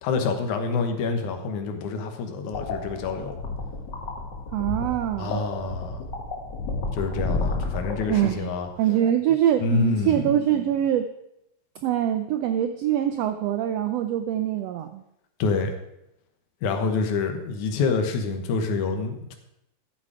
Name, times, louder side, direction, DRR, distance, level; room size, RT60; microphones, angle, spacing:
voice 1, 0.0-3.4 5.2-6.0 6.9-8.7 9.6-10.2 15.4-15.8 16.6-19.4, left 4 dB, 80° left, 5 dB, 2.6 m, -27 dB
sound 1, 2.5-8.6, left 3 dB, 45° left, 1.7 m, -31 dB
voice 2, 4.5-5.4 8.1-8.5 8.8-11.1 11.8-15.0, right 11 dB, 80° right, 8 dB, 1.5 m, -24 dB
13.0 x 8.5 x 4.9 m, 0.82 s
omnidirectional pair, 3.5 m